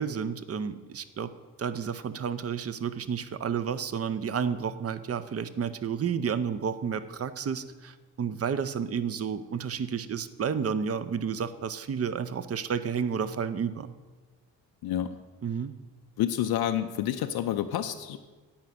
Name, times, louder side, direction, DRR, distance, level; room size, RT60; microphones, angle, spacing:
voice 1, 0.0-1.3 1.6-13.9 15.4-15.7, right 7 dB, 30° right, 12 dB, 0.7 m, -31 dB
voice 2, 14.8-15.1 16.2-18.2, left 11 dB, 50° left, 7 dB, 0.7 m, -28 dB
8.8 x 5.7 x 7.8 m, 1.3 s
hypercardioid pair, 45°, 48 cm